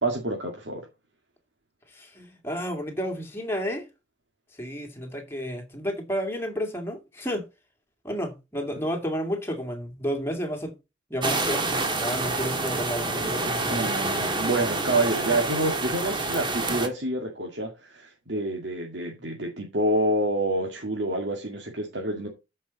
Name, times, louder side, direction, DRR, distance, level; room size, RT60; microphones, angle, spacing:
voice 1, 0.0-0.8 8.6-8.7 13.7-22.3, right 1 dB, 75° right, 2.1 m, -28 dB
voice 2, 1.9-3.9 4.6-7.4 8.0-10.7 11.1-13.9, equal, 15° left, 2.2 m, -31 dB
sound 1, 11.2-16.9, right 2 dB, 25° right, 1.6 m, -27 dB
13.5 x 5.5 x 4.1 m
head